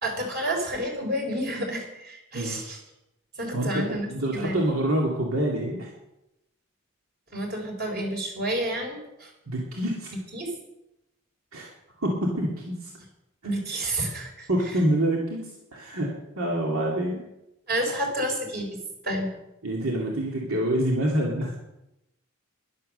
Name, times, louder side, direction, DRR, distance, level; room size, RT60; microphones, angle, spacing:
voice 1, 0.0-2.8 3.3-4.6 7.3-9.3 10.3-10.5 13.4-14.5 17.7-19.3, right 1 dB, 45° right, 1 dB, 4.1 m, -30 dB
voice 2, 2.3-2.7 3.5-3.8 4.1-5.9 9.5-10.1 11.5-11.7 12.0-12.9 13.4-13.5 14.5-16.1 16.4-17.2 19.6-21.6, right 1 dB, 85° right, -2 dB, 2.4 m, -26 dB
12.0 x 11.5 x 6.6 m, 0.90 s
head